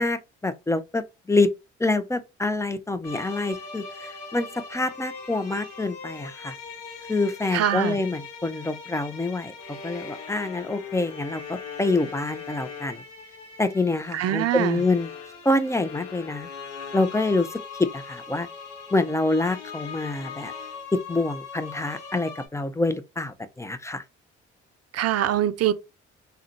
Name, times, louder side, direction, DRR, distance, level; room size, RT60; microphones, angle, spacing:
voice 1, 0.0-1.5 1.8-6.5 7.1-9.5 9.8-13.0 13.6-15.1 15.4-16.5 16.9-18.5 18.9-20.5 20.9-24.0, left 2 dB, 10° left, 0.4 m, -26 dB
sound 1, 3.0-22.5, left 5 dB, 90° left, 0.8 m, -40 dB
voice 2, 7.5-8.0 14.1-14.8 24.9-25.7, right 11 dB, 45° right, 0.5 m, -23 dB
3.6 x 2.2 x 2.8 m
hypercardioid pair, 50°, 35 cm